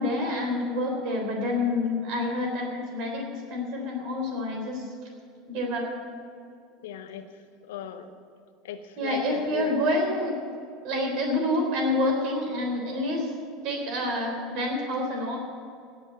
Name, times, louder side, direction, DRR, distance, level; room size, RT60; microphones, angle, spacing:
voice 1, 0.0-4.9 5.5-5.9 9.0-10.4 10.8-13.3 13.6-15.4, left 1 dB, 50° right, 1 dB, 3.6 m, -28 dB
voice 2, 6.8-7.3 7.6-8.1 8.6-9.7, left 9 dB, 65° left, 9 dB, 0.8 m, -37 dB
17.5 x 6.3 x 8.6 m, 2.4 s
figure-of-eight pair, 75°, 0 cm